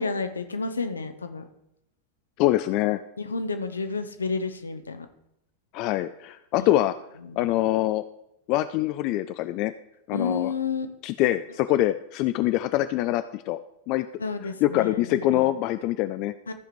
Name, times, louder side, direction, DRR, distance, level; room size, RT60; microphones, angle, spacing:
voice 1, 0.0-1.4 3.2-5.1 6.6-6.7 7.2-7.5 10.1-10.9 14.2-15.5 16.5-16.6, left 4 dB, 75° left, 9 dB, 0.8 m, -31 dB
voice 2, 2.4-3.0 5.7-6.9 7.4-8.0 8.5-9.7 10.1-10.5 11.0-13.6 13.9-14.1 14.4-16.3, left 15 dB, 40° left, 12 dB, 0.3 m, -24 dB
14.0 x 5.1 x 4.6 m, 0.82 s
figure-of-eight pair, 90°, 0 cm